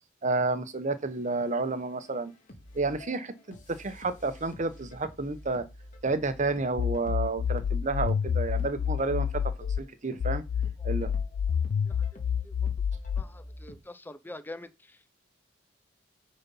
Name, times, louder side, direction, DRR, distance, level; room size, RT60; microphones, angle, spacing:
voice 1, 0.2-2.3 2.7-5.7 6.0-9.4 9.8-10.4 10.8-11.1, right 3 dB, 40° right, 1.0 m, -30 dB
sound 1, 1.0-13.8, left 1 dB, 40° left, 2.1 m, -50 dB
sound 2, 6.8-9.8 10.2-13.2, left 7 dB, 75° left, 0.3 m, -28 dB
voice 2, 13.2-14.7, left 2 dB, 10° left, 0.6 m, -44 dB
9.6 x 4.2 x 5.4 m
head